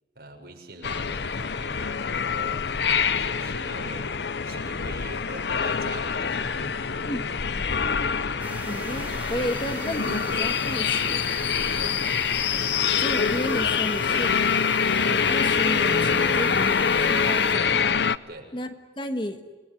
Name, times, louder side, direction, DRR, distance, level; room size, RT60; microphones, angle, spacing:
voice 1, 0.2-2.6 3.2-7.1 11.6-12.0 18.3-18.5, right 2 dB, 60° right, 1 dB, 6.9 m, -43 dB
sound 1, 0.8-18.2, left 6 dB, 75° left, 0.8 m, -25 dB
sound 2, 8.4-17.6, right 2 dB, 10° right, 4.8 m, -39 dB
voice 2, 8.6-11.3 12.8-14.4 15.0-18.0 18.5-19.4, left 1 dB, 25° left, 8 dB, 1.5 m, -32 dB
28.5 x 21.0 x 9.9 m, 1.3 s
head